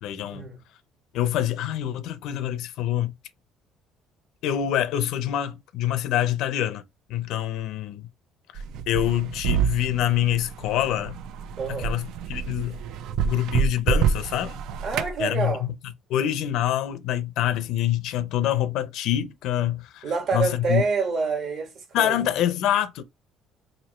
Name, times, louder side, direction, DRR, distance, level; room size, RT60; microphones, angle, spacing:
voice 1, 0.0-0.5 1.1-3.1 4.4-6.8 7.1-8.1 8.5-11.2 11.8-12.8 13.2-14.6 15.2-15.7 16.1-20.1 20.3-20.8 21.9-23.0, left 12 dB, 70° left, 0.5 m, -26 dB
sound 1, 8.6-15.2, right 7 dB, 70° right, 0.3 m, -27 dB
voice 2, 11.6-11.9 14.8-15.6 20.0-22.2, right 4 dB, 55° right, 1.4 m, -27 dB
3.0 x 2.6 x 4.2 m
cardioid pair, 160°, 0 cm